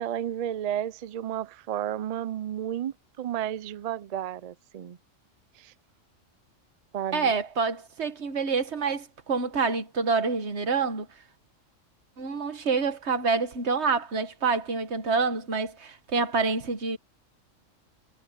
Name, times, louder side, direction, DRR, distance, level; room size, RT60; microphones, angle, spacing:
voice 1, 0.0-5.0 5.6-5.7 6.9-7.3, right 10 dB, 80° right, 0.3 m, -32 dB
voice 2, 7.1-11.1 12.2-17.0, right 4 dB, 60° right, 1.6 m, -27 dB
omnidirectional pair, 1.3 m